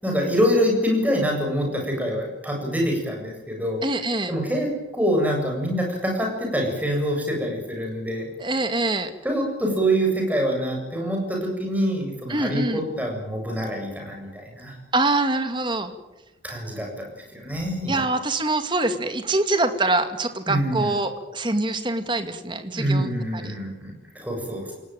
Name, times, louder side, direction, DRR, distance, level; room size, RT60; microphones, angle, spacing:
voice 1, 0.0-3.8 4.3-8.3 9.2-14.8 16.4-18.0 20.5-21.0 22.7-24.7, equal, 10° right, 1 dB, 7.6 m, -25 dB
voice 2, 3.8-4.3 8.4-9.1 12.3-12.8 14.9-15.9 17.9-23.6, right 2 dB, 25° right, 8 dB, 2.1 m, -24 dB
28.0 x 18.5 x 9.1 m, 0.98 s
head